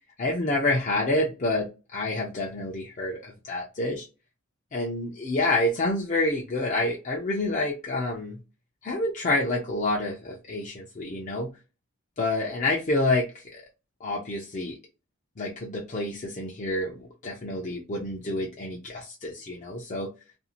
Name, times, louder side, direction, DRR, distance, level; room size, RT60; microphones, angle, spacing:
voice 1, 0.2-4.1 4.7-8.4 8.8-11.5 12.2-13.6 14.0-14.8 15.4-20.1, left 2 dB, 40° left, -1 dB, 0.5 m, -28 dB
2.6 x 2.4 x 2.9 m, 0.29 s
head